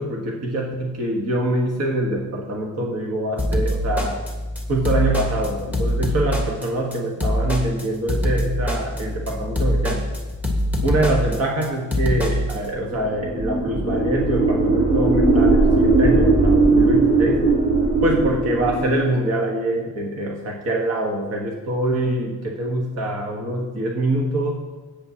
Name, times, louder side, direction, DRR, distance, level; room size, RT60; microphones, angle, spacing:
voice 1, 0.0-4.2 4.7-10.0 10.8-17.4 18.0-24.5, right 1 dB, 50° right, -1 dB, 1.5 m, -24 dB
sound 1, 3.4-12.6, equal, 5° right, 1.5 m, -24 dB
sound 2, 13.0-19.1, right 3 dB, 20° right, 3.0 m, -18 dB
16.0 x 8.6 x 2.9 m, 1.2 s
cardioid pair, 140°, 33 cm